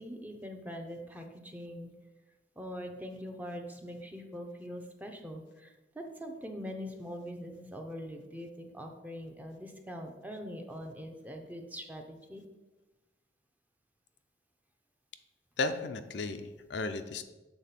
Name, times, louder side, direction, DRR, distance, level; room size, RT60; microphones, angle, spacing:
voice 1, 0.0-1.9 2.6-12.4, equal, 10° right, 4 dB, 0.7 m, -43 dB
voice 2, 15.6-17.2, left 3 dB, 75° left, 8 dB, 0.5 m, -34 dB
7.0 x 3.7 x 5.8 m, 1.1 s
head